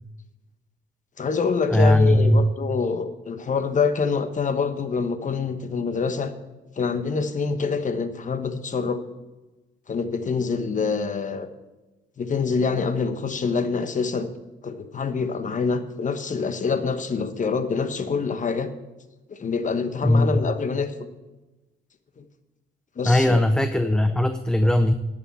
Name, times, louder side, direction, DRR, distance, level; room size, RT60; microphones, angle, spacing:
voice 1, 1.2-6.3 6.8-9.0 9.9-11.5 12.2-14.3 14.6-18.7 19.3-20.9 23.0-23.4, left 5 dB, 40° left, 9 dB, 1.2 m, -26 dB
voice 2, 1.7-2.5 20.0-20.4 23.0-24.9, left 1 dB, 5° left, 9 dB, 0.6 m, -19 dB
10.5 x 6.7 x 7.4 m, 1.1 s
cardioid pair, 90°, 20 cm